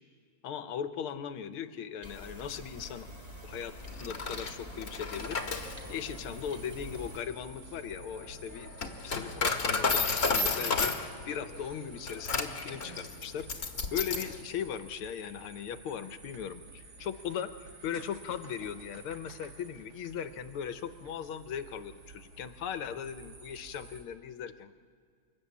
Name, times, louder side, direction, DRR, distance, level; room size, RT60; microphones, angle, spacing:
voice 1, 0.4-3.1 3.4-3.7 4.0-5.6 5.9-8.7 9.0-24.7, left 8 dB, 85° left, 10 dB, 1.8 m, -38 dB
sound 1, 2.0-7.2, equal, 15° right, 1.7 m, -46 dB
Coin (dropping), 3.9-14.4, left 4 dB, 40° left, 1.7 m, -33 dB
sound 2, 5.1-24.0, right 4 dB, 70° right, 2.7 m, -52 dB
28.5 x 11.0 x 8.6 m, 2.2 s
omnidirectional pair, 2.3 m